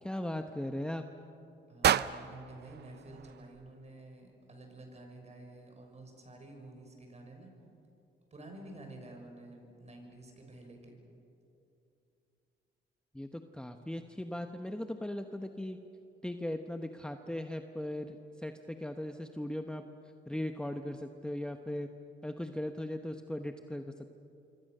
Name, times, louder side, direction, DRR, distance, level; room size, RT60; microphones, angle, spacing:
voice 1, 0.0-1.0 13.1-15.8 16.2-19.8 20.3-21.9 22.2-24.1, left 1 dB, 5° left, 6 dB, 1.0 m, -38 dB
voice 2, 1.7-7.5 8.3-10.9, right 2 dB, 35° right, 2 dB, 6.4 m, -50 dB
sound 1, 1.8-4.0, right 10 dB, 55° right, 0.6 m, -32 dB
26.5 x 25.0 x 6.7 m, 2.7 s
cardioid pair, 90°, 20 cm